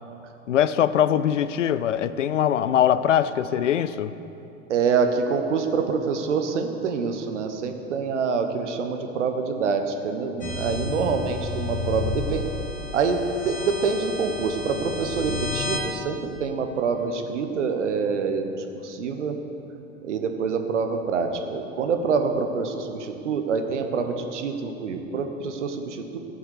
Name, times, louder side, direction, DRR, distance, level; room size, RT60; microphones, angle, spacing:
voice 1, 0.5-4.1, left 10 dB, 70° left, 15 dB, 0.6 m, -22 dB
voice 2, 4.7-12.4 12.9-18.5 18.8-19.4 20.0-26.2, right 5 dB, 65° right, 6 dB, 1.3 m, -26 dB
sound 1, 10.4-15.8, left 3 dB, 20° left, 2.1 m, -31 dB
14.5 x 8.5 x 6.6 m, 2.9 s
figure-of-eight pair, 85°, 39 cm